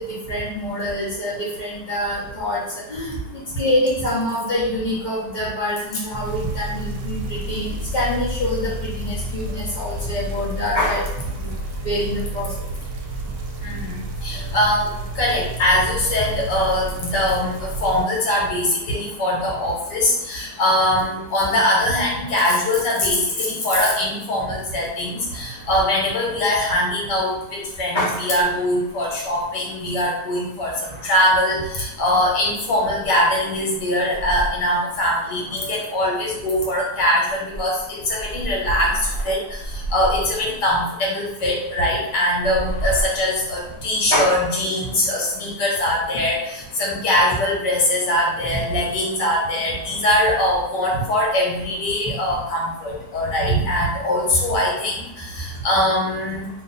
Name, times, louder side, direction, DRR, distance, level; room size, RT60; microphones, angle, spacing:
voice 1, 0.3-1.3 1.6-2.6 2.9-3.1 3.6-11.0 11.4-11.5 11.8-12.5 27.9-28.1 44.1-44.4, left 1 dB, 35° left, -10 dB, 0.8 m, -25 dB
sound 1, 6.1-18.0, right 1 dB, 90° right, 1.2 m, -30 dB
voice 2, 13.6-14.9 15.1-30.7 31.0-56.5, left 1 dB, 75° left, -3 dB, 1.6 m, -22 dB
sound 2, 28.1-28.5 28.9-29.0 29.2-29.4 30.7-31.4 31.7-31.8 33.0-33.1 33.4-35.0 35.4-36.4 37.2-40.8 41.3-41.4 42.2-44.2, right 2 dB, 65° right, 0.4 m, -31 dB
2.8 x 2.7 x 4.0 m, 0.87 s
omnidirectional pair, 1.8 m